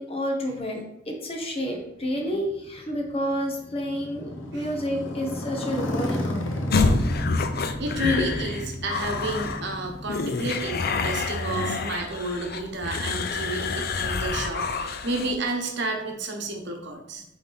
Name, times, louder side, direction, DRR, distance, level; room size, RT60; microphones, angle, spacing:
voice 1, 0.0-6.6, equal, 30° left, 1 dB, 1.3 m, -30 dB
Motorcycle, 1.7-11.7, equal, 70° left, 1.0 m, -33 dB
sound 1, 6.7-15.4, left 4 dB, 50° left, 0.6 m, -28 dB
voice 2, 7.6-17.2, right 1 dB, 60° right, 2 dB, 1.2 m, -31 dB
8.9 x 3.6 x 4.1 m, 0.83 s
head